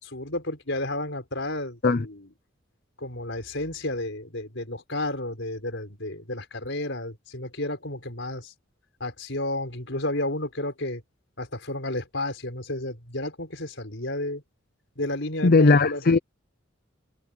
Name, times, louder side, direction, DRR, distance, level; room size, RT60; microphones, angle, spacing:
voice 1, 0.0-2.3 3.0-8.5 9.0-11.0 11.4-14.4 15.0-16.0, left 1 dB, 65° left, 6.0 m, -32 dB
voice 2, 15.4-16.2, left 3 dB, 50° left, 0.7 m, -18 dB
head